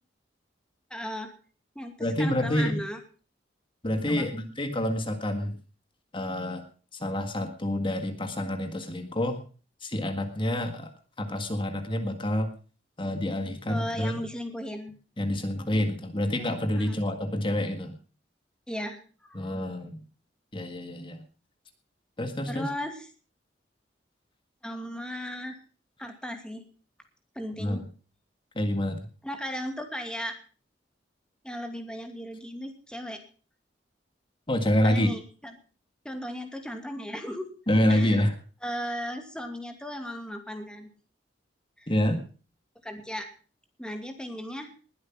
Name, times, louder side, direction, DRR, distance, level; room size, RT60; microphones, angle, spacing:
voice 1, 0.9-1.3 1.7-3.0 4.1-4.3 13.7-14.9 16.7-17.0 18.7-19.0 19.3-19.4 22.5-23.1 24.6-25.6 26.0-26.6 27.3-27.8 29.2-30.3 31.4-33.2 34.8-35.5 36.0-37.5 37.9-38.2 38.6-40.9 41.8-41.9 42.8-43.3 43.8-44.7, equal, 5° left, 5 dB, 2.6 m, -36 dB
voice 2, 2.0-2.8 3.8-5.5 6.1-6.6 6.9-9.4 9.8-10.9 11.2-12.5 13.0-14.2 15.2-18.0 19.4-20.0 20.5-21.2 22.2-22.7 27.6-27.8 28.6-29.1 34.5-35.1 37.7-38.3 41.9-42.2, left 1 dB, 30° left, 6 dB, 1.8 m, -27 dB
20.5 x 8.2 x 5.9 m, 0.39 s
head